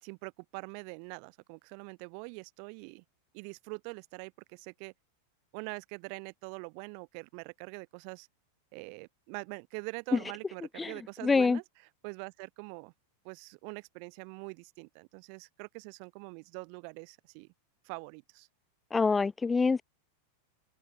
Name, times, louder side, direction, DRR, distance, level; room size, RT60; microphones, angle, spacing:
voice 1, 0.0-3.0 3.3-4.9 5.5-8.3 8.7-12.9 13.2-17.5 17.8-18.5, right 40 dB or more, 45° right, 4.3 m, -44 dB
voice 2, 11.2-11.6 18.9-19.8, left 4 dB, 15° left, 0.5 m, -25 dB
open air
figure-of-eight pair, 90°, 0 cm